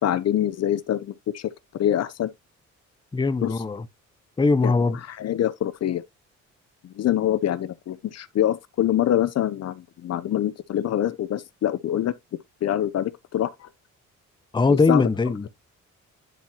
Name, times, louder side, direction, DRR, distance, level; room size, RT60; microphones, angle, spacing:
voice 1, 0.0-1.5 1.8-2.3 3.4-3.5 4.6-4.7 5.2-6.0 7.0-12.1 12.6-13.5 14.7-15.0, left 11 dB, 55° left, 0.7 m, -25 dB
voice 2, 3.1-3.9 4.4-5.0 14.5-15.5, left 3 dB, 15° left, 0.7 m, -21 dB
11.0 x 4.5 x 2.9 m
cardioid pair, 90°, 30 cm